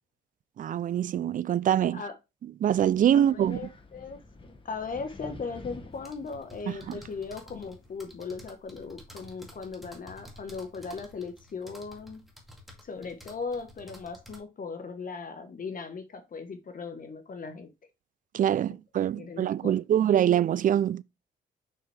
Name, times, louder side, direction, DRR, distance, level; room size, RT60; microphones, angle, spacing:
voice 1, 0.6-2.0 2.6-3.6 6.7-7.0 18.3-21.0, right 10 dB, 45° right, 0.4 m, -24 dB
Wind, 2.7-8.0, left 2 dB, 25° left, 1.5 m, -49 dB
voice 2, 3.3-4.2 4.6-12.2 12.8-17.7 19.0-19.8, left 4 dB, 45° left, 1.3 m, -38 dB
sound 1, 5.9-14.4, left 1 dB, ahead, 2.2 m, -51 dB
6.0 x 5.6 x 3.3 m
cardioid pair, 90°, 20 cm